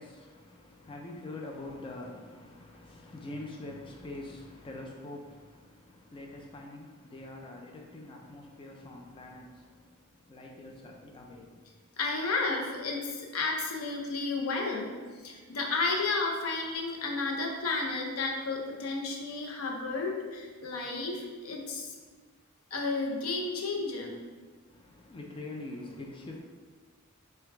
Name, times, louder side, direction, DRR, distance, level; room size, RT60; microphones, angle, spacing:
voice 1, 0.0-11.7 24.7-26.4, left 2 dB, 25° left, 0 dB, 0.4 m, -44 dB
voice 2, 12.0-14.9 15.2-21.9 22.7-24.1, left 3 dB, 85° left, 1 dB, 0.6 m, -32 dB
4.7 x 2.2 x 3.3 m, 1.5 s
head